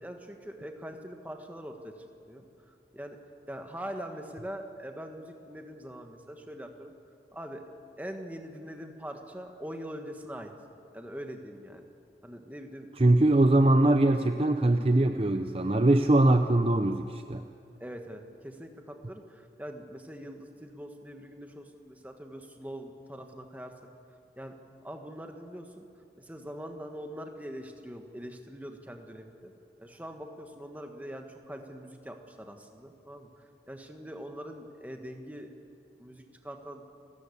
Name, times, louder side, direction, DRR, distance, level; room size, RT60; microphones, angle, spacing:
voice 1, 0.0-2.4 2.9-3.2 3.5-6.9 7.3-7.6 8.0-10.5 10.9-11.8 12.2-12.9 17.8-23.7 24.4-24.5 24.8-25.9 26.2-29.5 29.8-35.5 36.0-36.8, equal, 10° right, 4 dB, 1.5 m, -43 dB
voice 2, 13.0-17.4, right 1 dB, 30° right, 7 dB, 0.6 m, -22 dB
30.0 x 13.5 x 8.5 m, 2.5 s
head